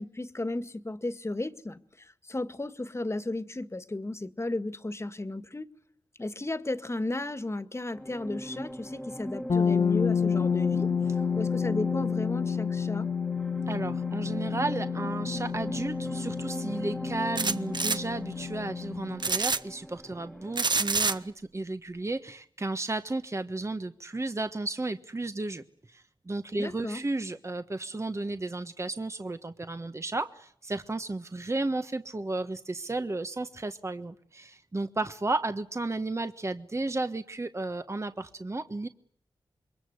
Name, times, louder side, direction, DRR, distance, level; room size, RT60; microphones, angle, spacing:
voice 1, 0.0-5.7 6.2-10.9 11.4-13.1 26.6-27.0, left 2 dB, 30° left, 1.9 m, -34 dB
sound 1, 7.9-21.3, equal, ahead, 1.9 m, -39 dB
sound 2, 9.5-19.3, left 7 dB, 75° left, 1.8 m, -30 dB
voice 2, 13.7-38.9, right 2 dB, 30° right, 1.4 m, -33 dB
sound 3, 17.4-18.0 19.2-19.6 20.6-21.1, right 4 dB, 55° right, 1.1 m, -26 dB
27.5 x 23.0 x 8.1 m
cardioid pair, 60°, 9 cm